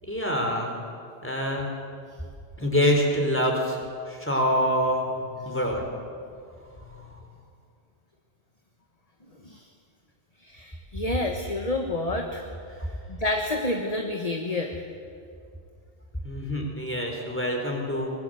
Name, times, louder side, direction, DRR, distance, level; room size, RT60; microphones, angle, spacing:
voice 1, 0.0-0.7 1.2-1.7 2.6-5.9 6.8-7.1 12.8-12.9 16.2-18.1, equal, 10° left, 1 dB, 4.3 m, -26 dB
voice 2, 10.4-12.4 13.1-14.8, left 2 dB, 35° left, 3 dB, 1.6 m, -29 dB
24.5 x 21.0 x 7.9 m, 2.3 s
omnidirectional pair, 1.1 m